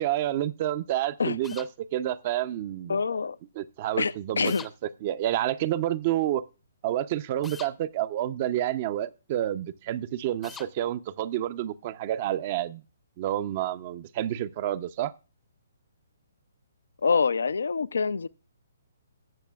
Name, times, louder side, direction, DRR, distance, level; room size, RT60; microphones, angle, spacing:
voice 1, 0.0-3.0 3.6-4.7 5.0-6.4 6.8-12.8 13.2-15.1, right 12 dB, 40° right, 0.6 m, -29 dB
sound 1, 1.4-1.7 4.4-4.7 7.4-7.7 10.4-10.7, left 6 dB, 10° left, 0.6 m, -43 dB
voice 2, 2.9-3.4 4.0-4.6 17.0-18.3, left 5 dB, 75° left, 0.4 m, -26 dB
20.0 x 6.7 x 2.4 m
figure-of-eight pair, 135°, 0 cm